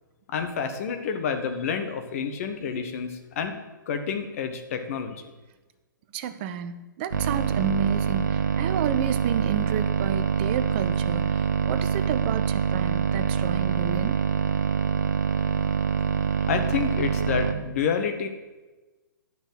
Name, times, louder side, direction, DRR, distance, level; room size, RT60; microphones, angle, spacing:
voice 1, 0.3-3.5 3.9-5.2 16.5-18.3, left 6 dB, 40° left, 6 dB, 1.3 m, -29 dB
voice 2, 6.1-14.2, right 8 dB, 30° right, 10 dB, 0.7 m, -31 dB
sound 1, 7.1-17.5, right 7 dB, 55° right, 0.9 m, -25 dB
9.9 x 6.1 x 7.8 m, 1.2 s
figure-of-eight pair, 125°, 11 cm